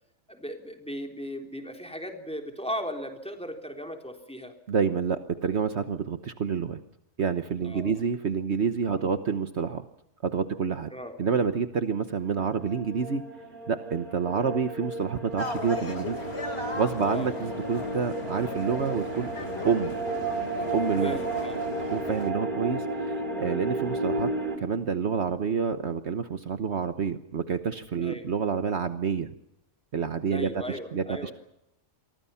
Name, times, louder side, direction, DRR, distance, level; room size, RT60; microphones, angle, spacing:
voice 1, 0.3-4.5 7.6-8.0 9.0-9.1 10.9-11.2 14.3-14.5 17.0-17.3 21.0-21.7 28.0-28.3 30.3-31.3, equal, 5° left, 3 dB, 3.6 m, -37 dB
voice 2, 4.7-6.8 7.2-9.8 10.2-10.9 11.2-13.2 13.7-16.2 16.7-19.3 19.6-19.9 20.7-21.2 21.9-29.3 29.9-30.5 30.9-31.3, right 6 dB, 60° right, 9 dB, 1.3 m, -28 dB
sound 1, 12.3-24.6, right 2 dB, 35° right, 3.5 m, -33 dB
sound 2, 15.4-22.3, left 2 dB, 55° left, 3.3 m, -36 dB
28.5 x 24.0 x 5.8 m, 0.82 s
omnidirectional pair, 1.3 m